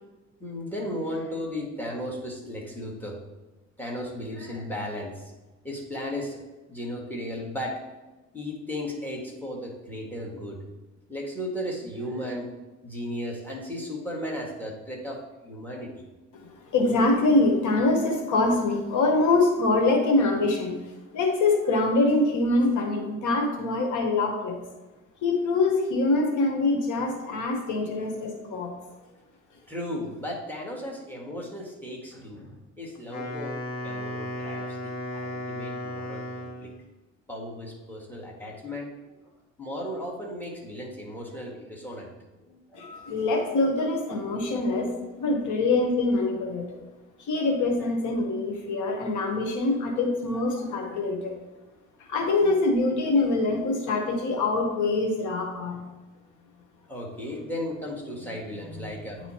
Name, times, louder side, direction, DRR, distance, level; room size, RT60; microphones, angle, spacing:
voice 1, 0.4-3.2 3.8-5.3 5.6-6.4 6.7-7.8 8.3-10.6 11.1-12.5 12.8-16.0 28.9-29.1 29.7-33.6 33.8-36.7 37.3-38.9 39.6-42.1 42.4-43.1 49.9-50.0 50.5-51.0 56.9-59.2, left 1 dB, 5° left, -1 dB, 1.7 m, -35 dB
voice 2, 16.3-20.8 21.1-24.6 25.2-28.7 42.7-44.9 45.2-46.8 47.2-51.4 52.0-55.8 58.7-58.9, left 2 dB, 80° left, 3 dB, 1.1 m, -24 dB
Wind instrument woodwind instrument, 33.0-36.8, left 1 dB, 65° left, 1.4 m, -35 dB
9.0 x 3.0 x 4.3 m, 1.1 s
cardioid pair, 90°, 30 cm